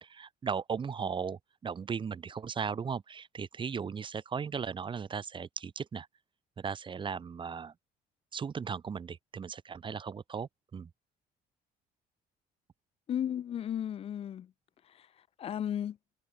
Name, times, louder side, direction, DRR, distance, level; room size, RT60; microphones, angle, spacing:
voice 1, 0.0-6.1 6.6-7.7 8.3-10.9, right 6 dB, 30° right, 0.8 m, -37 dB
voice 2, 13.1-14.5 14.9-15.1 15.4-16.0, left 9 dB, 35° left, 0.4 m, -34 dB
cardioid pair, 110°, 17 cm